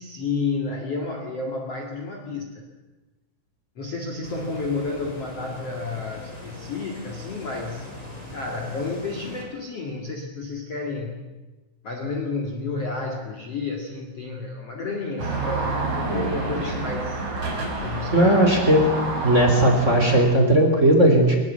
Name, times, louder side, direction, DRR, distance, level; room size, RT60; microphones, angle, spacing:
voice 1, 0.0-2.6 3.8-7.9 8.3-11.2 11.8-17.2 17.8-18.5, left 3 dB, 45° left, 1 dB, 2.5 m, -31 dB
sound 1, 4.2-9.4, left 1 dB, 10° left, 5.6 m, -41 dB
sound 2, 15.2-20.2, right 3 dB, 40° right, 5.6 m, -28 dB
voice 2, 18.1-18.8 19.2-21.4, right 1 dB, 20° right, 3 dB, 3.3 m, -17 dB
22.5 x 21.0 x 8.3 m, 1.2 s
omnidirectional pair, 5.0 m